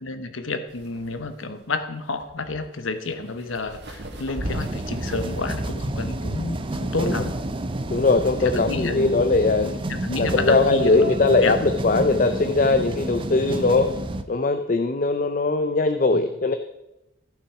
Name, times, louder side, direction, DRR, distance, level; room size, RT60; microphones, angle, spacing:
voice 1, 0.0-7.4 8.5-9.2 9.6-11.1 11.4-11.5 13.7-13.9 16.1-16.2, left 3 dB, 80° left, 9 dB, 1.0 m, -30 dB
sound 1, 0.7-5.5, equal, 55° right, 1.9 m, -38 dB
sound 2, 4.4-14.2, right 1 dB, 25° right, 0.5 m, -29 dB
voice 2, 7.9-9.7 10.2-13.9 14.3-16.6, left 3 dB, 40° left, 8 dB, 0.5 m, -20 dB
14.0 x 6.0 x 4.8 m, 0.90 s
head